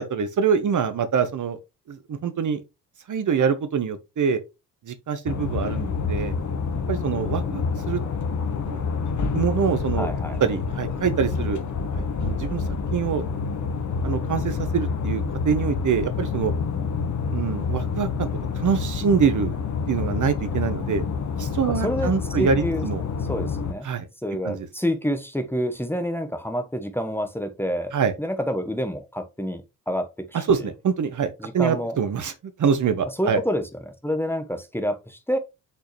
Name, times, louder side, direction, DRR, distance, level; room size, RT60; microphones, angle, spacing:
voice 1, 0.0-1.6 1.9-2.6 3.1-4.4 4.8-6.3 6.9-8.0 8.6-10.1 10.4-11.6 11.9-12.6 12.9-13.3 14.0-16.5 17.3-18.3 18.6-19.5 19.9-21.0 21.4-23.0 23.8-24.1 24.4-24.7 27.9-28.1 30.3-32.3 32.6-33.4, right 6 dB, 40° right, 1.1 m, -25 dB
sound 1, 5.3-23.7, left 5 dB, 35° left, 1.4 m, -27 dB
voice 2, 10.0-10.4 21.7-22.1 22.4-22.8 23.3-23.9 24.2-27.9 28.2-30.6 31.4-32.0 33.2-33.6 34.0-35.4, equal, 5° left, 1.3 m, -28 dB
6.1 x 5.7 x 3.2 m
hypercardioid pair, 50°, 47 cm